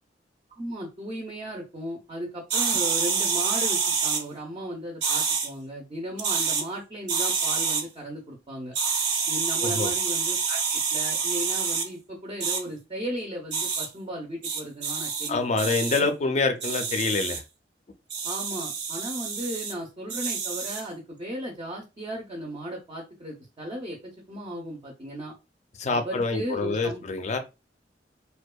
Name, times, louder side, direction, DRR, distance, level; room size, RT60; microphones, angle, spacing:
voice 1, 0.6-8.7 9.3-15.4 18.2-25.3 25.9-27.0, equal, 30° right, 0.5 m, -36 dB
sound 1, 2.5-4.2 5.0-5.5 6.2-6.6 7.1-7.8 8.7-11.9 12.4-12.6 13.5-13.9 14.4-15.3 15.6-16.0 16.6-17.4 18.1-19.7 20.1-20.8, right 5 dB, 80° right, 0.6 m, -27 dB
voice 2, 15.3-17.4 25.8-27.4, left 3 dB, 40° left, 0.4 m, -26 dB
2.7 x 2.1 x 2.2 m
head